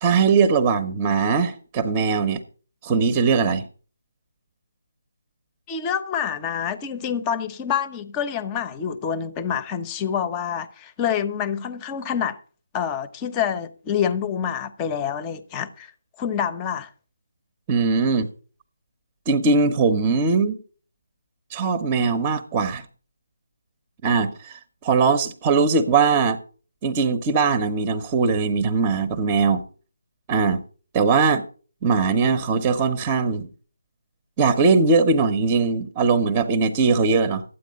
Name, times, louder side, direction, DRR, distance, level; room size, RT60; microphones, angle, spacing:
voice 1, 0.0-2.4 2.8-3.7 17.7-18.3 19.3-20.6 21.5-22.8 24.0-26.4 26.8-29.6 30.3-30.6 30.9-31.4 31.8-33.5 34.4-37.4, right 4 dB, 20° right, 1.0 m, -20 dB
voice 2, 5.7-12.4 12.7-15.9 16.2-16.9, left 8 dB, 15° left, 0.9 m, -27 dB
13.0 x 9.2 x 5.3 m
figure-of-eight pair, 160°, 0 cm